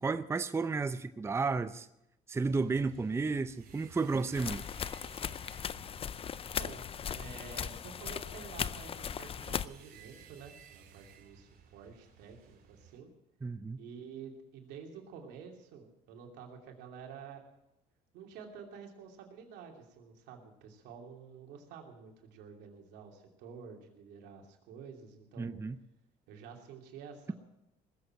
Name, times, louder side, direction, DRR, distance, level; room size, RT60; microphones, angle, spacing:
voice 1, 0.0-1.9 2.3-4.6 13.4-13.8 25.4-25.8, right 4 dB, 15° right, 0.6 m, -32 dB
sound 1, 2.4-13.0, right 7 dB, 60° right, 2.8 m, -57 dB
sound 2, 4.3-9.7, left 8 dB, 35° left, 0.5 m, -38 dB
voice 2, 7.1-13.1 13.8-17.4 18.1-25.5 26.3-27.3, right 6 dB, 90° right, 2.8 m, -50 dB
20.0 x 7.9 x 7.7 m
cardioid pair, 110°, 17 cm